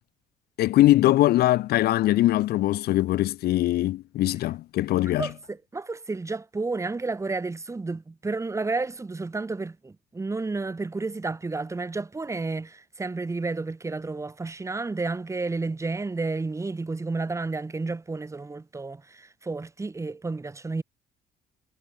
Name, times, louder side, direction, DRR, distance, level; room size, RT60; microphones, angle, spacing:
voice 1, 0.6-5.3, left 15 dB, 70° left, 0.9 m, -22 dB
voice 2, 5.2-20.8, right 3 dB, 15° right, 2.4 m, -31 dB
cardioid pair, 110°, 17 cm